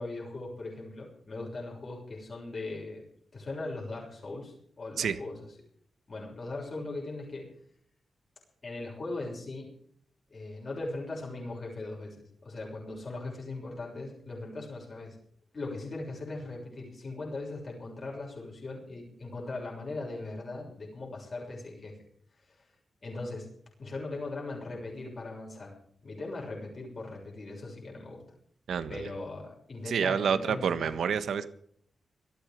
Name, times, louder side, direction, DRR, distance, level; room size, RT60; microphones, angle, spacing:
voice 1, 0.0-3.0 3.3-5.5 6.1-7.5 8.6-9.7 10.3-15.2 15.5-21.9 22.4-22.7 23.0-23.5 23.8-25.7 26.0-28.2 28.9-31.0, left 2 dB, 40° left, -2 dB, 6.5 m, -39 dB
voice 2, 28.7-29.1 29.9-31.5, right 7 dB, 90° right, 12 dB, 1.3 m, -28 dB
19.0 x 13.5 x 5.2 m, 0.62 s
wide cardioid pair, 130°, 0 cm